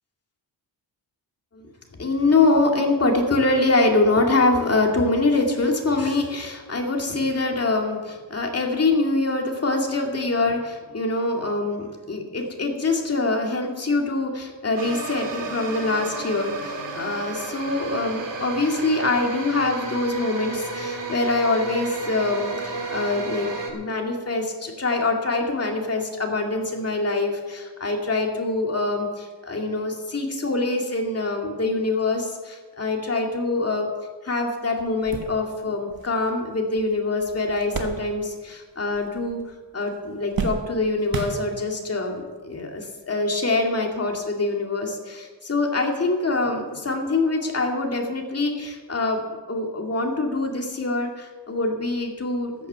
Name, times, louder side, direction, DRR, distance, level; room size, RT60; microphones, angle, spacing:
voice 1, 2.0-33.9 34.2-39.4 39.7-52.7, left 2 dB, 35° left, 1 dB, 2.3 m, -24 dB
sound 1, 14.8-23.7, right 3 dB, 90° right, 2.4 m, -32 dB
sound 2, 34.3-34.4 34.8-38.6 38.8-39.6 39.9-41.9 42.7-42.8 44.1-44.2, right 4 dB, 55° right, 1.5 m, -34 dB
14.0 x 8.8 x 6.9 m, 1.4 s
wide cardioid pair, 135°, 42 cm